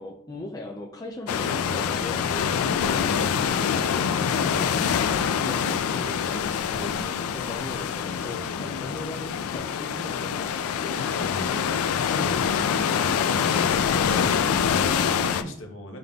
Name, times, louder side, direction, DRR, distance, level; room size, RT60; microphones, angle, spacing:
voice 1, 0.0-3.9 4.3-11.1 11.5-14.2, left 1 dB, 15° left, -1 dB, 0.4 m, -39 dB
sound 1, 1.3-15.4, left 7 dB, 85° left, 0.3 m, -25 dB
voice 2, 3.5-4.5 11.2-11.6 14.5-16.0, equal, 60° left, 3 dB, 0.9 m, -39 dB
5.2 x 3.7 x 2.3 m, 0.74 s
head